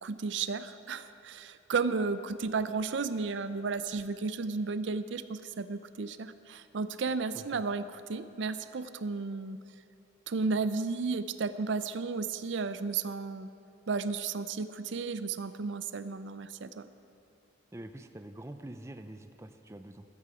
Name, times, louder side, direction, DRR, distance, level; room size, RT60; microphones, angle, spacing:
voice 1, 0.0-9.6 10.3-13.5 13.9-16.9, right 4 dB, 70° right, 13 dB, 0.5 m, -33 dB
voice 2, 17.7-20.0, right 1 dB, 15° right, 8 dB, 0.5 m, -45 dB
15.5 x 13.5 x 4.9 m, 2.9 s
head